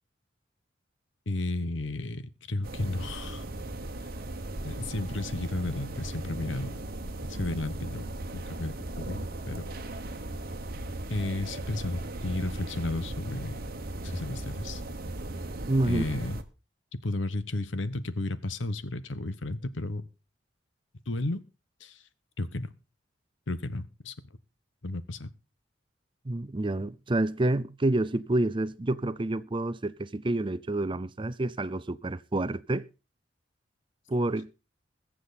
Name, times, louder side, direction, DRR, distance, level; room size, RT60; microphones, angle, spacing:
voice 1, 1.3-2.2 2.5-3.5 4.6-6.8 7.3-8.1 8.3-9.7 11.1-13.6 14.0-14.8 15.8-16.4 17.0-20.0 21.1-21.4 21.8-22.0 22.4-22.7 23.5-24.2 24.8-25.3, left 2 dB, 90° left, 1.1 m, -33 dB
sound 1, 2.6-16.4, right 2 dB, 55° right, 1.3 m, -37 dB
voice 2, 15.7-16.0 26.2-32.9 34.1-34.5, right 2 dB, 25° right, 0.5 m, -28 dB
21.0 x 7.6 x 4.1 m
head